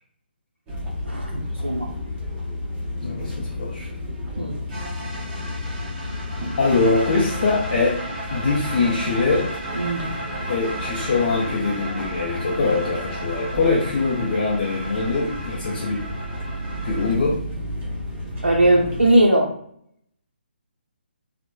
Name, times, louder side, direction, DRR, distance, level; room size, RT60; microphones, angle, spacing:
sound 1, 0.7-19.1, left 1 dB, 20° right, 0.6 m, -32 dB
voice 1, 1.0-1.9 4.4-4.6 9.7-10.1 18.4-19.5, right 1 dB, 85° right, -2 dB, 0.4 m, -19 dB
voice 2, 3.0-3.9 6.6-8.0 8.3-9.5 10.5-16.0 16.8-17.4, left 3 dB, 45° left, -5 dB, 0.5 m, -23 dB
sound 2, 4.7-17.1, right 1 dB, 35° right, 1.0 m, -34 dB
2.9 x 2.0 x 2.2 m, 0.66 s
figure-of-eight pair, 140°, 6 cm